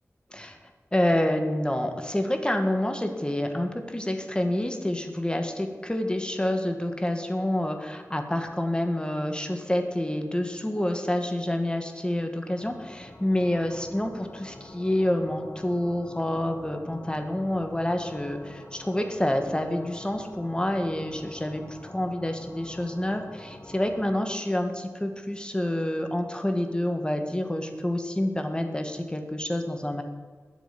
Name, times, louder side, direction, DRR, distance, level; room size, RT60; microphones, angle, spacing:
voice 1, 0.9-30.0, left 1 dB, 15° left, 5 dB, 1.9 m, -28 dB
sound 1, 12.5-24.2, left 1 dB, 50° left, 1.7 m, -46 dB
20.5 x 7.3 x 6.1 m, 1.5 s
wide cardioid pair, 80°, 5 cm